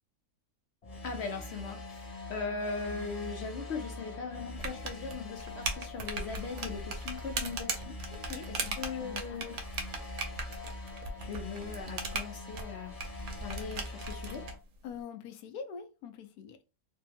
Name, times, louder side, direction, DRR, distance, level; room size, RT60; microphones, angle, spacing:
sound 1, 0.8-14.5, left 2 dB, 30° left, 0.8 m, -43 dB
voice 1, 1.0-8.0 8.5-9.6 11.2-13.0 13.4-14.5, left 4 dB, 65° left, 0.7 m, -39 dB
sound 2, 4.6-14.5, right 4 dB, 75° right, 1.1 m, -38 dB
voice 2, 8.1-9.4 14.8-16.6, left 7 dB, 90° left, 1.1 m, -45 dB
3.2 x 2.0 x 3.3 m
omnidirectional pair, 1.5 m